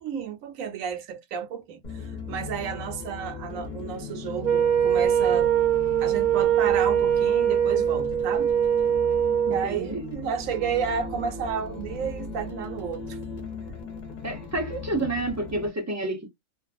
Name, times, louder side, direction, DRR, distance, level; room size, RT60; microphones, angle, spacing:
voice 1, 0.0-5.5 6.0-8.5 9.5-13.2, right 7 dB, 70° right, 1.0 m, -32 dB
sound 1, 1.8-15.7, left 4 dB, 40° left, 0.7 m, -38 dB
Wind instrument woodwind instrument, 4.4-9.7, right 9 dB, 90° right, 1.1 m, -22 dB
voice 2, 9.5-10.1 14.2-16.3, right 2 dB, 20° right, 0.4 m, -29 dB
2.5 x 2.3 x 2.4 m
omnidirectional pair, 1.5 m